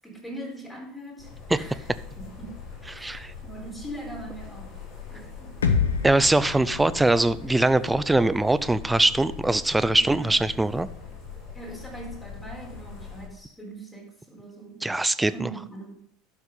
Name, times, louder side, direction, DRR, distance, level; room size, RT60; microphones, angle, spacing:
voice 1, 0.0-1.9 2.2-2.7 2.9-4.8 5.1-5.7 10.0-10.4 11.5-14.9 15.3-15.9, right 2 dB, 10° left, -1 dB, 4.0 m, -41 dB
sound 1, 1.2-13.3, left 6 dB, 45° left, 3.7 m, -42 dB
voice 2, 3.0-3.3 6.0-10.9 14.8-15.5, right 2 dB, 10° right, 15 dB, 0.5 m, -22 dB
sound 2, 5.6-9.5, left 6 dB, 80° left, 0.9 m, -30 dB
12.0 x 6.1 x 5.4 m, 0.63 s
figure-of-eight pair, 75°, 0 cm